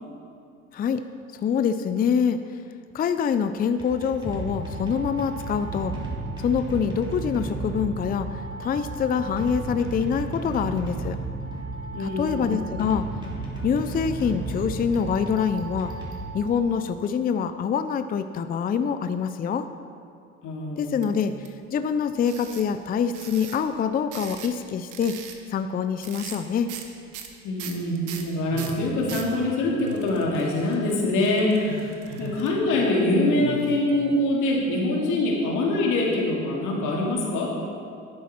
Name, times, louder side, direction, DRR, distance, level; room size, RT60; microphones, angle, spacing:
voice 1, 1.3-2.6 2.9-5.9 6.4-11.2 12.0-13.1 13.6-15.9 16.3-19.7 20.8-25.2 25.5-26.7, left 7 dB, 30° left, 10 dB, 0.4 m, -25 dB
sound 1, 3.7-16.9, right 2 dB, 15° right, 2.9 m, -34 dB
voice 2, 11.9-12.5 20.4-21.0 27.4-31.8 32.2-37.5, left 2 dB, 70° left, -2 dB, 2.6 m, -24 dB
sound 2, 21.0-21.5 22.2-22.7 23.1-23.6 24.1-24.6 24.9-25.4 26.0-26.4 26.7-26.9 27.1-29.3 29.9-32.5, right 8 dB, 65° right, 1.3 m, -39 dB
sound 3, 28.4-29.3 29.7-30.0 30.3-30.8 31.5-32.4 33.3-33.7, right 3 dB, 85° right, 2.5 m, -39 dB
11.5 x 8.2 x 4.5 m, 2.3 s
supercardioid pair, 90°, 32 cm